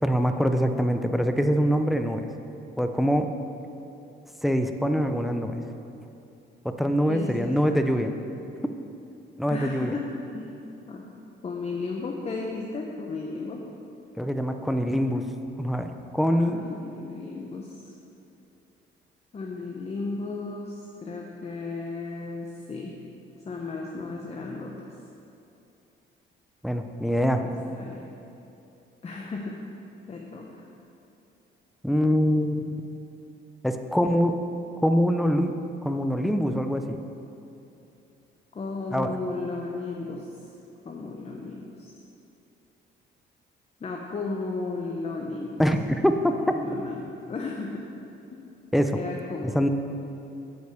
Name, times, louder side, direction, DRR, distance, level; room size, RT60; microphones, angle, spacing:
voice 1, 0.0-2.3 2.8-3.3 4.4-5.6 6.6-8.1 9.4-10.0 14.2-15.3 15.6-16.6 26.6-27.5 31.8-32.8 33.6-34.4 34.8-35.5 35.8-37.0 38.9-39.2 45.6-46.3 48.7-49.0 49.4-49.7, equal, ahead, 7 dB, 0.5 m, -24 dB
voice 2, 7.1-8.1 9.5-10.1 10.3-10.5 10.9-11.1 11.4-13.6 16.3-17.9 19.3-22.9 23.4-24.9 27.4-28.1 29.0-29.6 30.1-30.6 38.5-40.3 40.8-41.9 43.8-45.6 46.3-47.0 47.3-47.9 48.3-48.4 48.9-49.6, left 3 dB, 30° left, 0 dB, 0.8 m, -34 dB
7.9 x 5.3 x 6.6 m, 2.8 s
cardioid pair, 90°, 20 cm